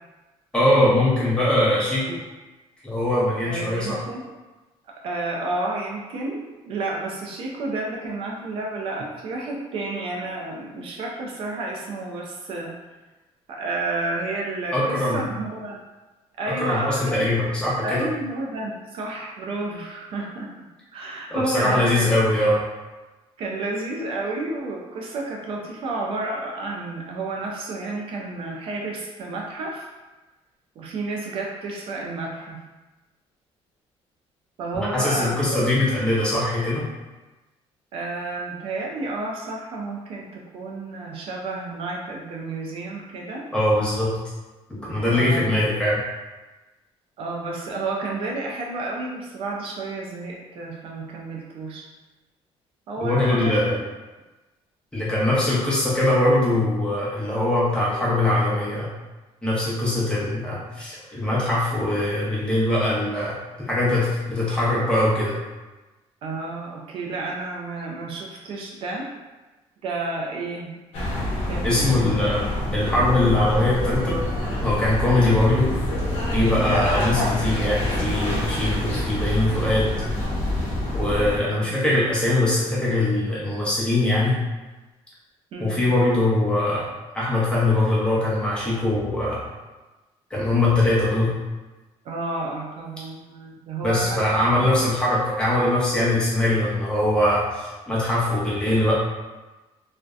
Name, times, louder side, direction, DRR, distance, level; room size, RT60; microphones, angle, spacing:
voice 1, 0.5-2.1 2.8-4.0 14.7-15.2 16.6-18.0 21.3-22.6 34.8-36.8 43.5-44.1 44.7-46.0 53.0-53.7 54.9-58.9 59.4-63.4 63.7-65.4 71.6-74.2 74.6-75.7 76.3-79.9 80.9-84.4 85.6-86.9 87.1-89.4 90.3-91.3 93.8-98.9, left 1 dB, 10° left, -7 dB, 0.7 m, -22 dB
voice 2, 3.4-4.2 5.0-12.7 13.5-15.8 16.4-17.3 17.8-22.1 23.4-29.9 30.8-32.6 34.6-35.7 37.9-43.5 45.1-45.6 47.2-51.9 52.9-53.6 66.2-69.1 69.8-70.8 71.4-72.1 76.5-76.8 81.1-81.7 85.5-85.9 92.0-94.7, right 2 dB, 55° right, -1 dB, 0.4 m, -31 dB
sound 1, 70.9-81.4, left 1 dB, 60° left, 0.8 m, -26 dB
2.6 x 2.1 x 2.3 m, 1.2 s
cardioid pair, 155°, 11 cm